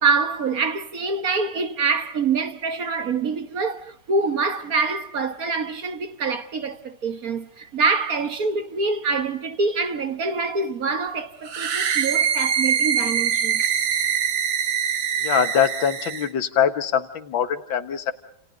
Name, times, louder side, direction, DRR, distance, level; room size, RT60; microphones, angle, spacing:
voice 1, 0.0-13.6, right 4 dB, 50° right, 1.7 m, -25 dB
sound 1, 11.5-16.3, right 8 dB, 80° right, 2.3 m, -23 dB
voice 2, 15.2-18.1, left 8 dB, 85° left, 2.1 m, -23 dB
29.5 x 28.5 x 3.9 m
omnidirectional pair, 2.0 m